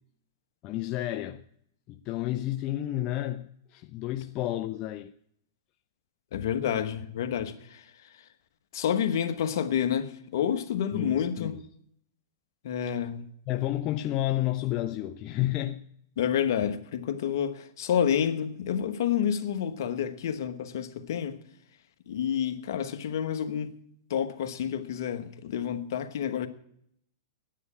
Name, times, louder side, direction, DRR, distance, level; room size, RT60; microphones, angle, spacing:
voice 1, 0.6-1.4 1.9-5.1 10.9-11.5 12.8-12.9 13.5-15.8, left 14 dB, 35° left, 0.5 m, -31 dB
voice 2, 6.3-7.8 8.7-11.6 12.6-13.2 16.2-21.4 22.1-23.7 24.1-26.5, left 9 dB, 65° left, 1.3 m, -29 dB
9.9 x 9.7 x 8.5 m
hypercardioid pair, 125°, 2 cm